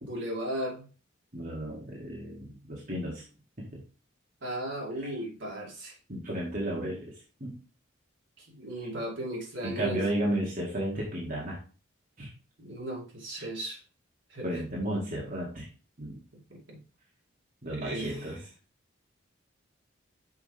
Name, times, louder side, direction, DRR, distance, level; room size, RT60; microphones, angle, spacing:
voice 1, 0.0-0.9 4.4-5.9 8.4-10.0 12.6-13.8 14.3-14.5 16.5-16.8 17.7-18.4, right 1 dB, 65° right, -2 dB, 2.5 m, -36 dB
voice 2, 1.3-3.2 5.0-5.2 6.1-7.1 7.4-7.5 8.8-8.9 9.6-11.6 12.2-12.3 13.4-13.5 14.4-15.7 16.0-16.2 17.6-18.4, right 1 dB, 45° right, -4 dB, 1.8 m, -33 dB
6.3 x 5.1 x 3.3 m, 0.36 s
head